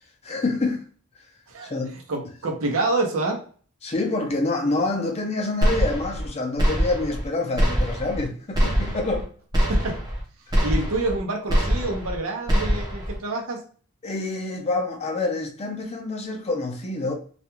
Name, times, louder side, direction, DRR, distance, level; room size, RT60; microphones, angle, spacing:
voice 1, 0.2-0.8 1.7-2.0 3.8-9.3 10.5-10.6 14.0-17.1, left 2 dB, 30° left, 0.5 m, -27 dB
voice 2, 1.5-3.4 9.7-10.0 10.6-13.6, right 2 dB, 75° right, 0.7 m, -27 dB
sound 1, 5.6-6.3 6.6-7.3 7.6-8.3 8.5-9.2 9.5-10.2 10.5-11.2 11.5-12.2 12.5-13.2, equal, 20° right, 0.6 m, -23 dB
2.4 x 2.2 x 2.9 m
head